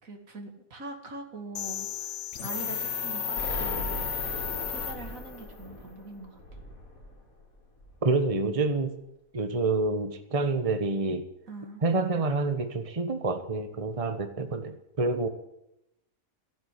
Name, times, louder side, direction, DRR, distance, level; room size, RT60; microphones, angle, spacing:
voice 1, 0.0-4.1 4.7-6.4 11.5-11.8, right 2 dB, 75° right, 3 dB, 2.8 m, -43 dB
sound 1, 1.5-5.4, left 8 dB, 60° left, 1.3 m, -33 dB
Explosion, 3.4-8.2, equal, 80° left, 3.8 m, -39 dB
voice 2, 8.0-8.9 9.3-11.3 11.8-15.3, right 3 dB, 25° right, 7 dB, 1.2 m, -27 dB
15.5 x 9.2 x 9.9 m, 0.83 s
omnidirectional pair, 1.5 m